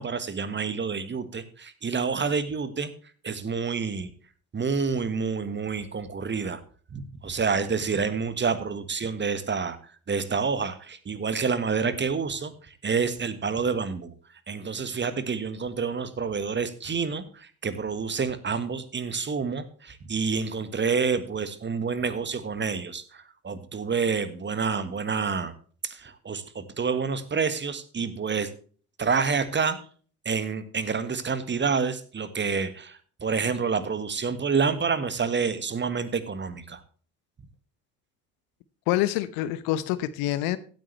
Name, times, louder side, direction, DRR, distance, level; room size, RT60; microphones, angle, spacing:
voice 1, 0.0-2.9 3.2-4.1 4.5-6.6 6.9-14.1 14.5-25.5 25.8-28.5 29.0-29.8 30.2-36.8, right 5 dB, 25° right, 13 dB, 1.5 m, -28 dB
voice 2, 38.9-40.6, left 14 dB, 60° left, 15 dB, 1.0 m, -26 dB
16.0 x 8.9 x 3.3 m, 0.42 s
figure-of-eight pair, 55°, 40 cm